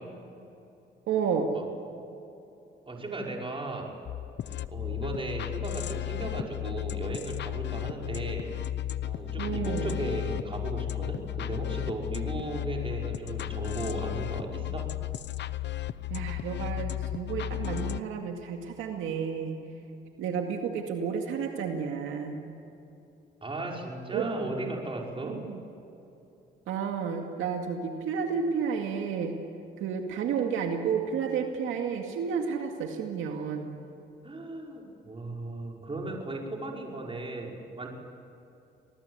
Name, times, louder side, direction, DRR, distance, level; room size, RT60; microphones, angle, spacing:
voice 1, 1.1-1.5 9.4-9.9 16.1-19.6 20.2-22.4 24.1-24.3 25.2-25.6 26.7-29.3 29.8-33.8, right 6 dB, 90° right, 3 dB, 2.2 m, -31 dB
voice 2, 2.9-3.9 4.7-8.5 9.0-14.9 23.4-25.4 34.2-37.9, right 2 dB, 25° right, -1 dB, 5.5 m, -36 dB
sound 1, 4.0-18.0, left 13 dB, 60° left, 0.8 m, -34 dB
25.5 x 19.5 x 8.2 m, 2.8 s
cardioid pair, 90°, 20 cm